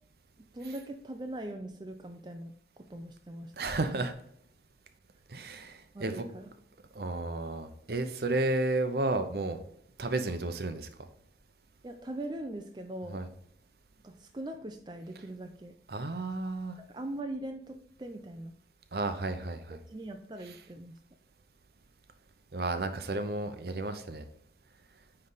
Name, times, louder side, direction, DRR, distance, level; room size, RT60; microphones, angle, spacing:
voice 1, 0.4-2.5 2.8-3.5 3.8-4.1 5.9-6.5 11.8-13.2 14.0-15.7 16.9-18.6 19.9-21.0, right 1 dB, 25° right, 5 dB, 0.4 m, -41 dB
voice 2, 3.6-4.1 5.3-6.3 6.9-9.6 10.0-10.9 13.1-13.3 15.9-16.8 18.9-19.8 22.5-24.2, right 2 dB, 55° right, 9 dB, 0.7 m, -32 dB
9.4 x 3.3 x 4.0 m, 0.71 s
head